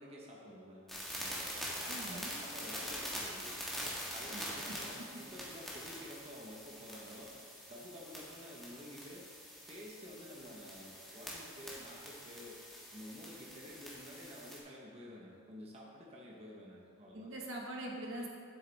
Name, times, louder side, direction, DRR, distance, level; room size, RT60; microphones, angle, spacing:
voice 1, 0.0-3.7 4.1-7.3 7.7-9.2 9.7-12.6 12.9-17.3, equal, 30° right, -3 dB, 1.0 m, -51 dB
sound 1, 0.9-14.6, equal, ahead, 1.5 m, -44 dB
voice 2, 1.9-2.4 4.3-4.8 17.1-18.3, right 1 dB, 70° right, -1 dB, 1.5 m, -43 dB
10.0 x 8.0 x 3.4 m, 2.3 s
head